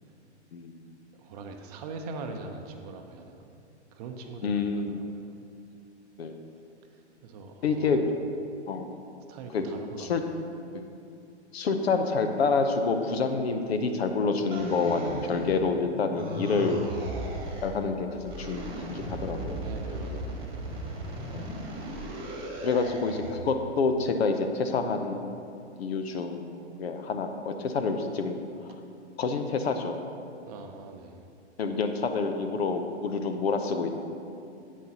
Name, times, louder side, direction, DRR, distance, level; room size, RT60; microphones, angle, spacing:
voice 1, 1.2-3.5 3.9-5.3 6.9-8.0 9.3-10.2 16.2-16.5 19.5-20.6 30.5-31.2, right 3 dB, 35° right, 5 dB, 0.7 m, -42 dB
voice 2, 4.4-5.0 6.2-6.4 7.6-8.0 8.7-8.9 9.5-9.6 10.0-10.2 10.7-10.9 11.5-16.9 17.6-19.6 20.0-20.2 21.3-21.5 22.6-28.4 29.2-29.9 31.6-33.9, left 4 dB, 60° left, 6 dB, 0.9 m, -28 dB
sound 1, 14.5-15.8 16.1-17.8 18.2-23.4, right 1 dB, 15° right, 1.5 m, -37 dB
11.0 x 8.4 x 2.9 m, 2.6 s
figure-of-eight pair, 115°, 35 cm